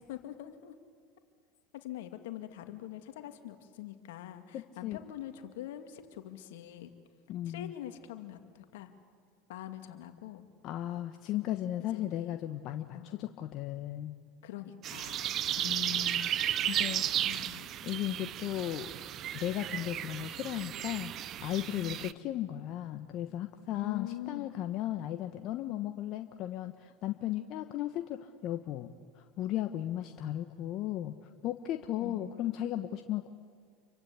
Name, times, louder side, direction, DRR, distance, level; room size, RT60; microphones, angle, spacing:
voice 1, 0.1-0.8 1.7-6.9 7.5-8.9 9.5-10.5 11.8-12.4 12.9-13.2 14.4-15.4 17.2-17.8 21.8-22.2 23.7-24.5 32.0-32.4, left 12 dB, 75° left, 7 dB, 2.3 m, -44 dB
voice 2, 4.5-5.0 7.3-7.7 10.6-14.1 15.6-16.3 16.7-17.0 17.8-18.9 19.3-28.9 29.1-31.1 31.4-33.3, left 13 dB, 55° left, 6 dB, 1.2 m, -36 dB
sound 1, 14.8-22.1, right 11 dB, 45° right, 0.8 m, -34 dB
29.0 x 24.0 x 8.5 m, 2.1 s
hypercardioid pair, 90°, 0 cm